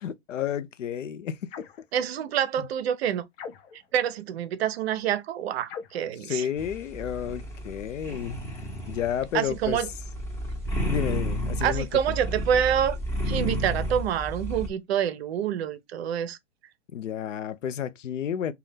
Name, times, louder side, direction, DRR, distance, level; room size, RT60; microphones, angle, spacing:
voice 1, 0.0-1.7 6.2-8.6 8.9-9.8 10.9-11.9 16.9-18.5, left 9 dB, 85° left, 0.5 m, -31 dB
sound 1, 1.5-1.9 3.3-3.9 5.6-6.1, left 6 dB, 50° left, 0.8 m, -41 dB
voice 2, 1.9-3.2 3.9-6.5 9.3-9.9 11.6-13.0 13.2-16.4, right 9 dB, 60° right, 0.6 m, -27 dB
sound 2, 6.6-14.7, equal, 5° left, 0.7 m, -32 dB
2.7 x 2.3 x 3.4 m
hypercardioid pair, 120°, 37 cm